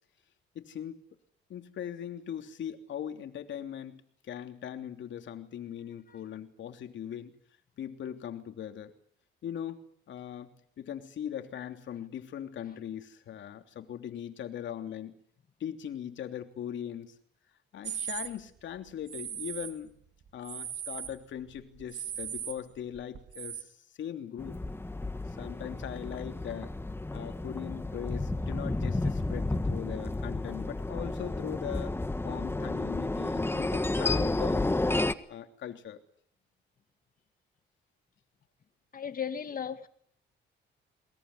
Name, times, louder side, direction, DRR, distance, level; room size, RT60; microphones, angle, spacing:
voice 1, 0.5-1.0 1.5-7.3 7.8-8.9 9.4-9.8 10.1-10.5 10.8-15.2 15.6-17.1 17.7-19.9 20.3-24.6 25.4-26.7 27.1-32.0 32.2-34.7 35.3-36.0, left 9 dB, 70° left, 3.1 m, -40 dB
sound 1, 17.8-18.3 19.1-19.7 20.2-21.2 21.5-23.6, right 9 dB, 65° right, 2.5 m, -38 dB
sound 2, 24.4-35.1, left 2 dB, 10° left, 1.6 m, -31 dB
voice 2, 38.9-39.9, left 7 dB, 45° left, 2.3 m, -36 dB
22.5 x 21.5 x 9.8 m
cardioid pair, 90°, 20 cm